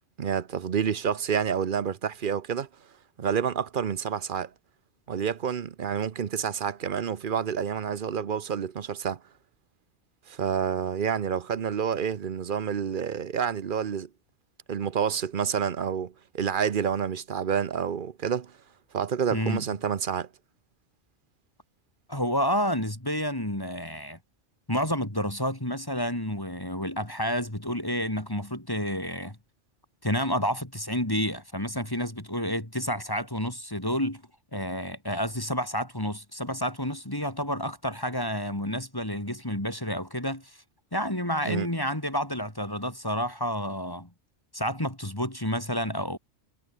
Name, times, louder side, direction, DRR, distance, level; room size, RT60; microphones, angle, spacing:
voice 1, 0.2-2.7 3.2-4.5 5.1-9.2 10.3-14.1 14.7-18.5 18.9-20.3 41.5-41.7, right 7 dB, 50° right, 0.9 m, -28 dB
voice 2, 19.3-19.6 22.1-24.2 24.7-29.4 30.0-34.2 34.5-40.6 40.9-44.1 44.5-46.2, equal, 20° left, 3.5 m, -30 dB
omnidirectional pair, 1.2 m